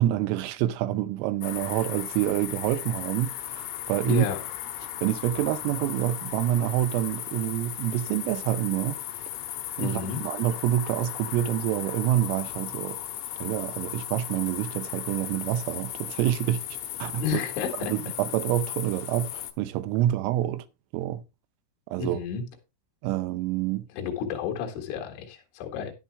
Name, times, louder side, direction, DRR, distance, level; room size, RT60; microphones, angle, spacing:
voice 1, 0.0-4.3 5.0-9.0 9.8-13.0 13.4-16.6 17.0-17.4 17.8-20.7 20.9-21.2 21.9-22.2 23.0-23.9, right 13 dB, 85° right, 3.3 m, -27 dB
sound 1, 1.4-19.5, left 13 dB, 85° left, 3.9 m, -36 dB
voice 2, 4.1-4.4 9.8-10.2 17.2-17.9 22.0-22.4 23.9-25.9, left 7 dB, 70° left, 4.0 m, -31 dB
11.0 x 10.0 x 3.3 m
omnidirectional pair, 6.0 m